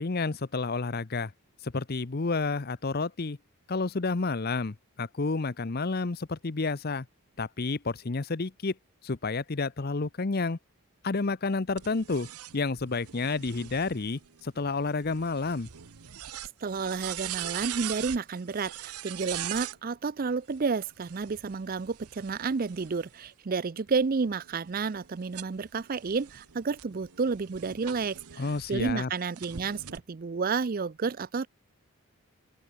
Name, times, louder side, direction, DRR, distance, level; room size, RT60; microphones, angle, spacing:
voice 1, 0.0-1.3 1.6-3.4 3.7-7.1 7.4-8.8 9.0-10.6 11.0-12.3 12.5-15.7 28.4-29.1, left 3 dB, 45° left, 0.7 m, -30 dB
sound 1, 11.8-19.8 20.9-23.3 23.9-28.9 29.4-30.0, right 12 dB, 85° right, 0.9 m, -41 dB
voice 2, 16.6-28.4 28.7-31.5, right 4 dB, 40° right, 0.4 m, -31 dB
open air
head